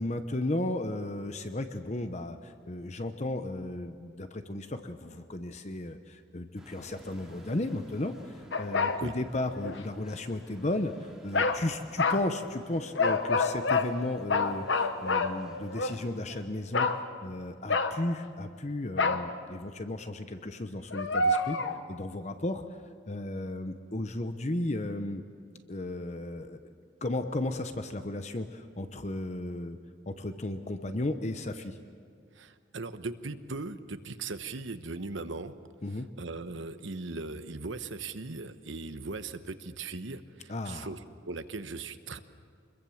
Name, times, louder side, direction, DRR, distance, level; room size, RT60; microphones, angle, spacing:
voice 1, 0.0-16.9 17.2-21.6 21.9-22.8 23.1-25.2 25.7-26.7 27.0-29.8 30.1-31.8 35.8-36.1 40.5-40.9, left 1 dB, 35° left, 8 dB, 0.8 m, -34 dB
sound 1, 6.6-16.5, equal, ahead, 2.8 m, -53 dB
sound 2, 8.5-9.0 9.6-9.8 11.3-11.6 12.0-12.3 13.0-13.9 14.3-16.0 16.7-17.0 17.7-18.1 19.0-19.3 20.9-21.8, left 3 dB, 65° left, 1.1 m, -27 dB
voice 2, 32.3-35.5 36.2-41.0 41.2-42.2, right 3 dB, 70° right, 10 dB, 1.0 m, -38 dB
25.5 x 21.5 x 7.2 m, 2.2 s
head